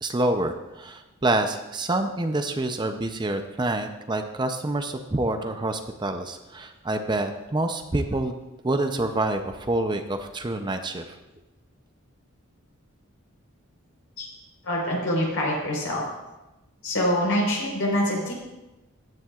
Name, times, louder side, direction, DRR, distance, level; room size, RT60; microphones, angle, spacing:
voice 1, 0.0-11.2, right 2 dB, 20° right, 6 dB, 0.5 m, -27 dB
voice 2, 14.6-16.0 16.8-18.3, equal, 75° left, -2 dB, 4.3 m, -25 dB
15.5 x 10.0 x 2.4 m, 1.0 s
head